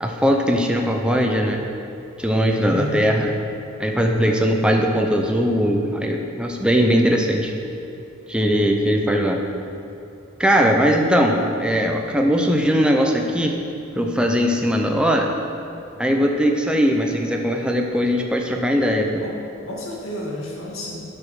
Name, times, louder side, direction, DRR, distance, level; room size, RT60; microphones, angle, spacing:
voice 1, 0.0-1.6 2.2-3.3 3.8-7.5 8.3-9.4 10.4-13.6 13.9-15.3 16.0-19.1, equal, 5° right, 1 dB, 0.6 m, -20 dB
voice 2, 2.7-3.1 19.1-19.4 19.6-21.0, left 1 dB, 85° left, -4 dB, 1.9 m, -31 dB
11.5 x 5.0 x 4.8 m, 2.8 s
head